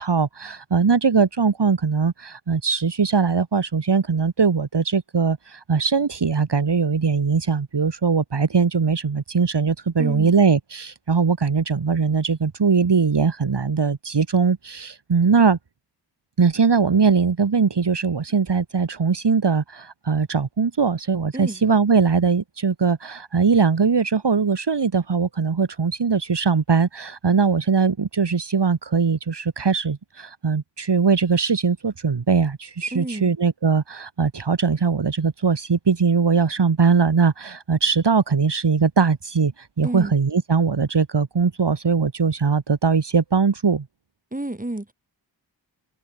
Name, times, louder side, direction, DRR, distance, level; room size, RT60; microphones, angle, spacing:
voice 1, 0.0-15.6 16.4-43.9, right 5 dB, 65° right, 2.0 m, -21 dB
voice 2, 10.0-10.4 21.3-21.6 32.9-33.3 39.8-40.1 44.3-44.9, right 1 dB, 20° right, 3.7 m, -30 dB
cardioid pair, 45°, 45 cm